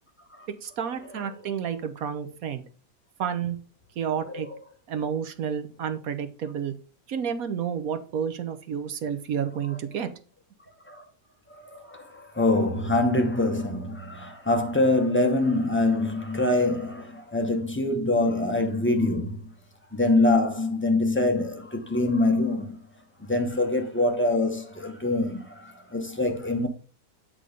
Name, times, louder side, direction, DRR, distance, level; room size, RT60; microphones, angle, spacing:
voice 1, 0.6-2.6 3.2-3.6 4.0-4.5 4.9-6.7 7.1-10.1, right 8 dB, 65° right, 1.1 m, -30 dB
voice 2, 4.2-4.6 10.9-11.1 11.5-19.5 19.9-22.8 23.2-26.7, left 2 dB, 20° left, 0.3 m, -25 dB
8.3 x 3.8 x 5.0 m
omnidirectional pair, 1.8 m